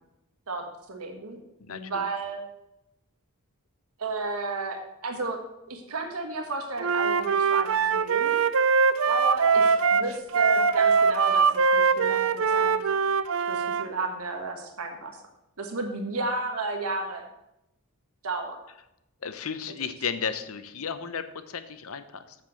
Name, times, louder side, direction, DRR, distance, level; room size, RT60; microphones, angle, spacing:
voice 1, 0.5-1.4 1.7-2.4 4.0-5.4 5.7-8.4 9.0-12.8 13.5-15.2 15.6-17.2 18.2-18.6, right 3 dB, 80° right, 4 dB, 1.4 m, -33 dB
voice 2, 1.6-2.1 19.2-22.4, left 6 dB, 70° left, 11 dB, 0.8 m, -34 dB
Wind instrument woodwind instrument, 6.8-13.8, right 5 dB, 65° right, 0.5 m, -22 dB
7.6 x 7.5 x 6.4 m, 0.88 s
head